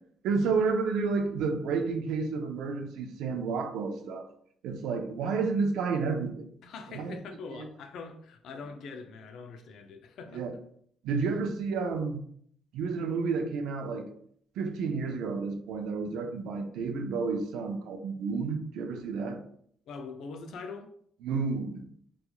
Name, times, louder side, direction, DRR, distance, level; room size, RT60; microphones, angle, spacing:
voice 1, 0.2-4.3 4.6-6.4 6.9-7.2 7.6-7.7 10.3-10.5 11.0-12.2 12.7-14.1 14.6-19.4 21.2-21.8, right 4 dB, 90° right, 0.3 m, -30 dB
voice 2, 6.6-10.4 19.9-20.9, left 4 dB, 75° left, 0.4 m, -43 dB
2.8 x 2.3 x 2.2 m
cardioid pair, 90°, 0 cm